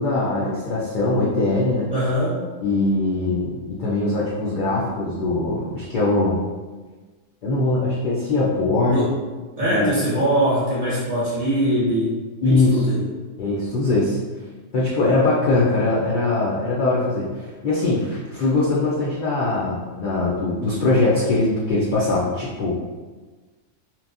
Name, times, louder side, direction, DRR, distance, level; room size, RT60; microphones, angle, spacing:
voice 1, 0.0-1.9 2.6-6.4 7.4-9.1 9.6-9.9 12.4-12.8 13.4-14.2 14.7-22.7, left 2 dB, 70° left, -6 dB, 0.4 m, -21 dB
voice 2, 1.9-2.4 8.8-9.1 9.6-13.1, right 1 dB, 45° right, -8 dB, 0.5 m, -22 dB
2.9 x 2.2 x 2.4 m, 1.3 s
omnidirectional pair, 1.4 m